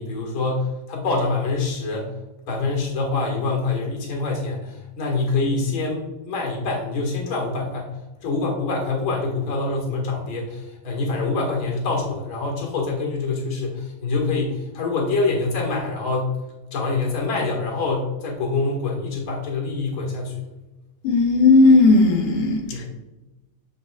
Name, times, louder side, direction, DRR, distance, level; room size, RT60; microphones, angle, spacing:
voice 1, 0.0-2.1 2.5-16.4 16.7-20.4 22.7-22.9, left 3 dB, 45° left, 0 dB, 1.7 m, -25 dB
voice 2, 21.0-22.6, left 3 dB, 80° left, 1 dB, 3.0 m, -15 dB
8.1 x 7.4 x 2.3 m, 1.1 s
omnidirectional pair, 4.3 m